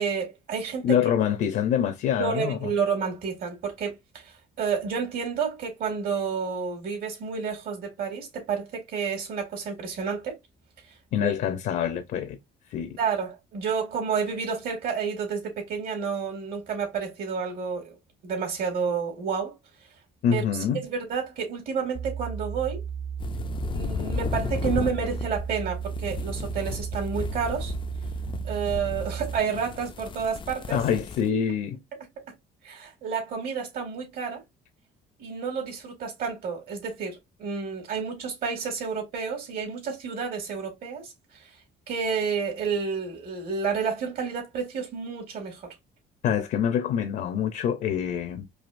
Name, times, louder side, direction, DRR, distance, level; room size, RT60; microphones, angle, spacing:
voice 1, 0.0-1.0 2.2-10.4 11.2-11.3 13.0-18.0 18.2-19.5 20.3-20.4 20.8-22.8 23.7-27.7 28.4-30.8 32.6-34.4 35.2-41.1 41.9-45.6, right 6 dB, 60° right, 2.4 m, -30 dB
voice 2, 0.8-2.7 11.1-12.4 12.7-13.0 20.2-20.8 30.7-31.8 46.2-48.5, left 8 dB, 65° left, 0.7 m, -25 dB
sound 1, 21.9-29.4, right 7 dB, 35° right, 0.5 m, -34 dB
sound 2, 23.2-31.3, left 6 dB, 30° left, 0.4 m, -35 dB
4.8 x 2.8 x 2.6 m
cardioid pair, 110°, 17 cm